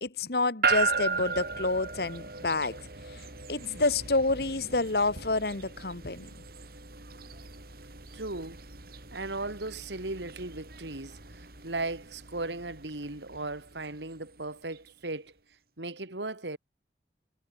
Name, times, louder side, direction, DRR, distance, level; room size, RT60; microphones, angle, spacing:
voice 1, 0.0-2.8 3.1-6.3, left 3 dB, 60° left, 1.8 m, -29 dB
sound 1, 0.6-14.9, right 4 dB, 60° right, 4.0 m, -37 dB
voice 2, 8.1-8.6 9.1-15.3 15.8-16.6, right 2 dB, 90° right, 3.0 m, -37 dB
head